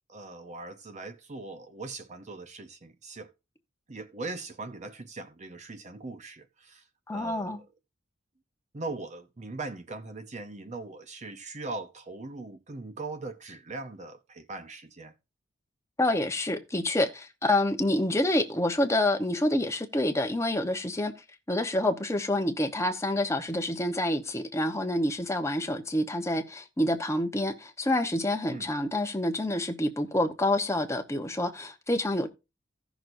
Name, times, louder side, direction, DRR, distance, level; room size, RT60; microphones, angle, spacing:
voice 1, 0.1-3.3 3.9-6.8 7.1-7.7 8.7-15.1 28.5-28.7, right 3 dB, 35° right, 0.7 m, -40 dB
voice 2, 7.1-7.6 16.0-21.1 21.5-32.3, left 1 dB, 15° left, 0.9 m, -27 dB
16.0 x 6.1 x 2.6 m
head